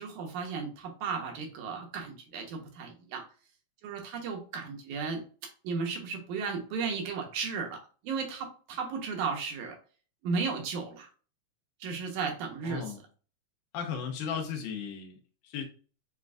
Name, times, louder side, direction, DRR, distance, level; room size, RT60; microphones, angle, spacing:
voice 1, 0.0-3.2 3.8-5.2 5.6-9.8 10.2-11.1 11.8-13.0, right 5 dB, 80° right, 2.3 m, -34 dB
voice 2, 12.6-13.0 13.7-15.2 15.4-15.6, left 7 dB, 85° left, 2.3 m, -35 dB
7.1 x 2.5 x 2.3 m
omnidirectional pair, 3.5 m